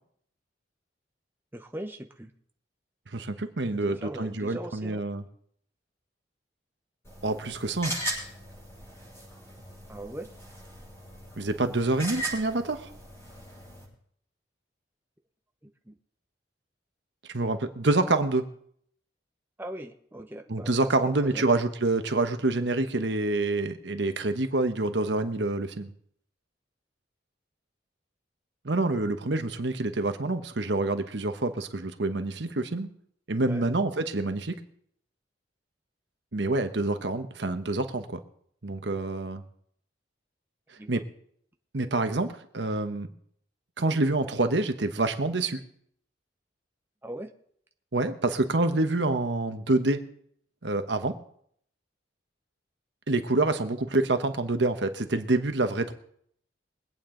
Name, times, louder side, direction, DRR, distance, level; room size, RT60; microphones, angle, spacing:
voice 1, 1.5-2.3 3.7-5.1 9.9-10.3 15.6-15.9 19.6-20.7 21.0-21.4 33.4-33.6 40.8-41.0 47.0-47.3, right 1 dB, 10° right, 4 dB, 0.8 m, -40 dB
voice 2, 3.1-5.2 7.2-8.0 11.4-12.9 17.3-18.5 20.5-25.9 28.6-32.9 33.3-34.6 36.3-38.2 38.6-39.4 40.9-41.0 41.7-43.1 43.8-45.6 47.9-50.0 50.6-51.2 53.1-55.9, right 2 dB, 70° right, 8 dB, 1.1 m, -27 dB
sound 1, 7.0-13.8, right 2 dB, 15° left, 6.2 m, -39 dB
23.5 x 8.9 x 3.8 m, 0.66 s
head